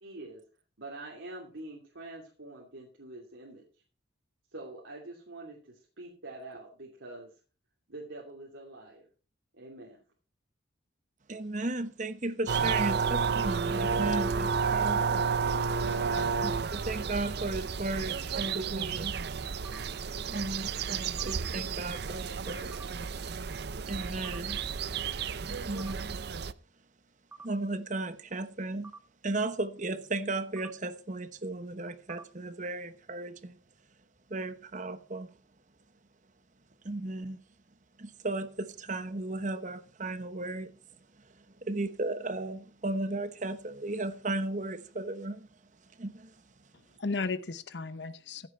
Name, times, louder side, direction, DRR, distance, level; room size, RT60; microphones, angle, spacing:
voice 1, 0.0-0.4 0.8-3.6 4.5-7.3 7.9-9.1 9.5-10.0, right 2 dB, 80° right, 2.7 m, -45 dB
voice 2, 11.3-15.2 16.4-16.5 16.9-19.1 20.3-22.7 23.9-24.6 25.7-26.0 27.4-28.9 29.2-33.3 34.3-35.3 36.9-37.4 38.2-40.7 41.7-45.3 46.0-46.1, right 2 dB, 40° right, 1.1 m, -35 dB
sound 1, 12.5-26.5, right 5 dB, 55° right, 0.5 m, -31 dB
voice 3, 15.7-16.3 46.7-48.5, left 4 dB, 60° left, 0.8 m, -37 dB
sound 2, 19.6-19.8 21.2-21.3 22.7-22.9 24.2-24.4 25.8-25.9 27.3-27.5 28.8-29.0 30.6-30.7 32.1-32.2, right 4 dB, 10° right, 0.6 m, -46 dB
15.5 x 8.5 x 4.4 m
head